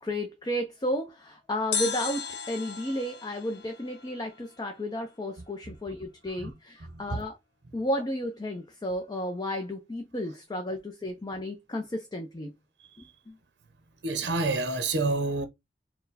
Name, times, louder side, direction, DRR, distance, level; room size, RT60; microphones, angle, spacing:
voice 1, 0.0-7.4 7.7-12.5 13.0-13.3, left 1 dB, 25° left, 0.6 m, -33 dB
sound 1, 1.7-4.8 5.1-5.2, left 5 dB, 85° left, 0.8 m, -36 dB
voice 2, 14.0-15.5, right 3 dB, 80° right, 0.8 m, -27 dB
4.4 x 2.2 x 4.0 m
head